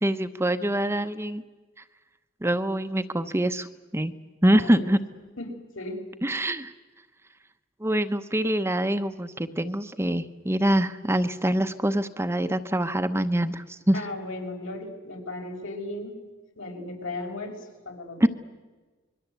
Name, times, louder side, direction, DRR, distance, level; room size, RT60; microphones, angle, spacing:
voice 1, 0.0-1.4 2.4-3.7 3.9-4.1 4.4-5.0 6.2-6.7 7.8-14.0 18.2-18.3, right 1 dB, 15° right, 9 dB, 0.8 m, -24 dB
voice 2, 4.5-4.9 5.4-5.5 5.8-6.0 13.9-16.1 16.6-17.6 17.9-18.3, left 2 dB, 75° left, 2 dB, 5.8 m, -36 dB
27.0 x 22.5 x 8.2 m, 1.3 s
head